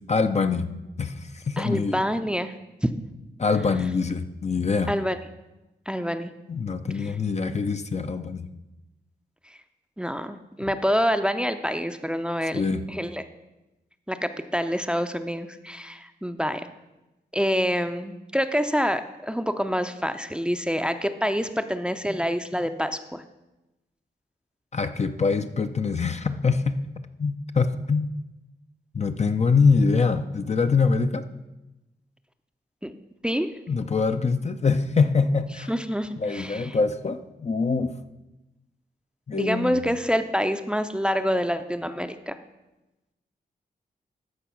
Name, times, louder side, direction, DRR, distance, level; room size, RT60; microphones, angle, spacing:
voice 1, 0.1-2.0 3.4-4.9 6.5-8.4 12.5-12.8 24.7-26.8 27.2-28.1 28.9-31.2 33.7-35.7 36.2-37.9 39.3-39.9, left 4 dB, 40° left, 8 dB, 0.6 m, -24 dB
voice 2, 1.6-2.5 2.8-2.9 4.9-5.2 5.9-6.3 10.0-13.2 14.1-16.7 17.3-23.2 32.8-32.9 33.2-33.5 35.7-36.8 39.3-42.4, equal, 5° right, 9 dB, 0.6 m, -27 dB
13.0 x 4.7 x 5.9 m, 1.0 s
cardioid pair, 65°, 18 cm